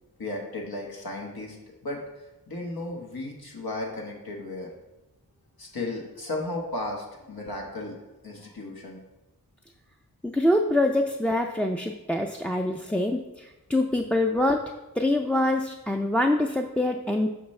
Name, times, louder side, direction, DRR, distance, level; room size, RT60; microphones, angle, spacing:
voice 1, 0.2-1.6 1.8-4.7 5.6-9.0, left 2 dB, 85° left, -1 dB, 1.3 m, -35 dB
voice 2, 10.2-17.3, left 1 dB, 5° left, 2 dB, 0.3 m, -25 dB
6.0 x 5.9 x 3.2 m, 1.0 s
wide cardioid pair, 45°, 36 cm